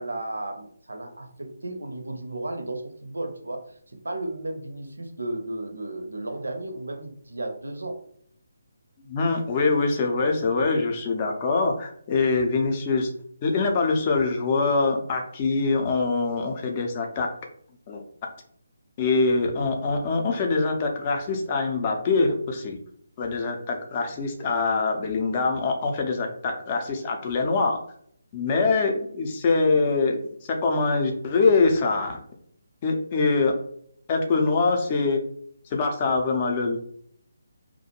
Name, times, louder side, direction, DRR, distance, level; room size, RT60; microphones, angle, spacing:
voice 1, 0.0-3.7 4.0-8.0, right 2 dB, 80° right, 5 dB, 0.6 m, -34 dB
voice 2, 9.1-13.1 13.4-17.3 17.9-18.0 19.0-22.8 23.2-27.8 28.3-32.2 32.8-33.5 34.1-35.2 35.7-36.8, left 3 dB, 30° left, 2 dB, 0.5 m, -24 dB
2.4 x 2.1 x 2.8 m, 0.65 s
figure-of-eight pair, 150°, 0 cm